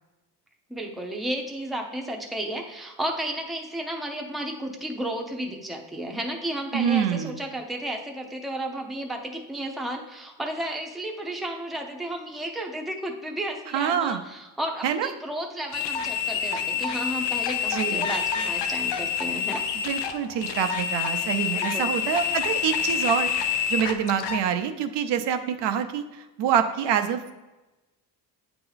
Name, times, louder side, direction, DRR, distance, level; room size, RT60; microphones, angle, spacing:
voice 1, 0.7-19.6 21.5-21.9, right 1 dB, ahead, 1 dB, 0.6 m, -33 dB
voice 2, 6.7-7.4 13.7-14.2 14.8-15.1 17.7-18.1 19.8-27.3, right 8 dB, 85° right, 7 dB, 0.7 m, -26 dB
sound 1, 15.7-24.4, left 8 dB, 90° left, 0.7 m, -27 dB
8.6 x 2.9 x 3.9 m, 1.1 s
cardioid pair, 135°, 41 cm